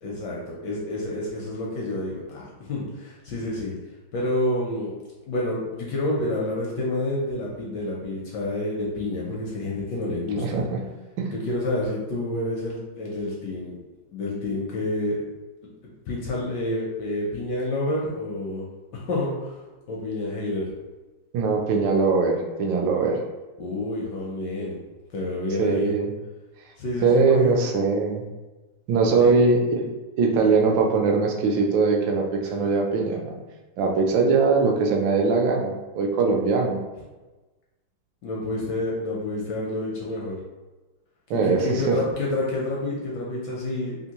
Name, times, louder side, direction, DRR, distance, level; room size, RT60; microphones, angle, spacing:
voice 1, 0.0-3.7 4.1-4.9 5.3-10.6 11.3-13.8 14.1-15.2 16.1-18.7 18.9-19.6 19.9-20.7 23.6-24.8 25.1-25.9 26.8-27.5 29.1-29.3 32.6-32.7 38.2-40.4 41.3-44.0, left 1 dB, 75° left, -3 dB, 1.0 m, -28 dB
voice 2, 10.4-10.8 11.2-11.3 21.3-23.2 25.6-26.1 27.0-28.2 28.9-29.9 30.2-33.4 33.8-36.8 41.3-42.0, right 4 dB, 75° right, 1 dB, 1.1 m, -21 dB
3.5 x 2.5 x 2.8 m, 1.2 s
omnidirectional pair, 2.3 m